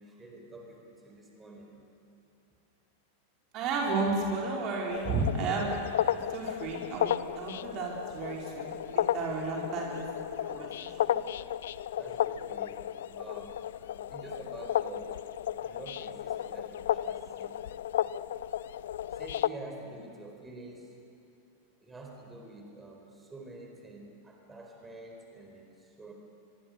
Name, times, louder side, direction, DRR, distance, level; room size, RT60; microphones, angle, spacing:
voice 1, 0.0-1.7 9.4-9.7 12.0-12.8 13.2-13.6 14.1-15.1 15.6-17.6 19.1-21.0 21.8-26.1, right 2 dB, 15° right, 1 dB, 4.4 m, -47 dB
voice 2, 3.5-10.1 10.5-11.0, right 3 dB, 35° right, -1 dB, 4.2 m, -33 dB
sound 1, 4.9-19.5, left 11 dB, 60° left, 0.5 m, -33 dB
25.0 x 23.5 x 6.7 m, 2.7 s
figure-of-eight pair, 90°, 0 cm